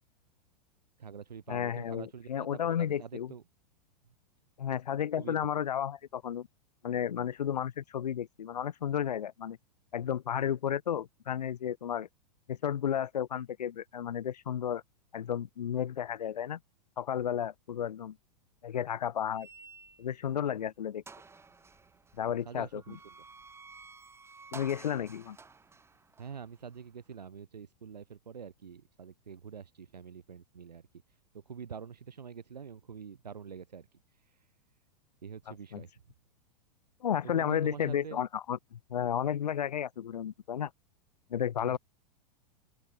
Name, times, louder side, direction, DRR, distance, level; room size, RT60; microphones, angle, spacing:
voice 1, 1.0-3.4 5.2-5.4 22.3-23.0 26.2-30.9 31.3-34.5 35.2-35.9 37.2-38.2 41.6-41.8, right 7 dB, 80° right, 4.1 m, -46 dB
voice 2, 1.5-3.3 4.6-6.5 6.8-9.6 9.9-12.1 12.5-14.8 15.1-16.6 17.0-18.2 18.6-19.5 20.0-21.0 22.2-23.0 24.5-25.4 35.5-35.8 37.0-40.7 41.3-41.8, left 9 dB, 75° left, 1.0 m, -33 dB
sound 1, 19.3-20.3 20.7-20.8 21.1-27.2, right 4 dB, 10° right, 4.4 m, -52 dB
open air
hypercardioid pair, 100°, 21 cm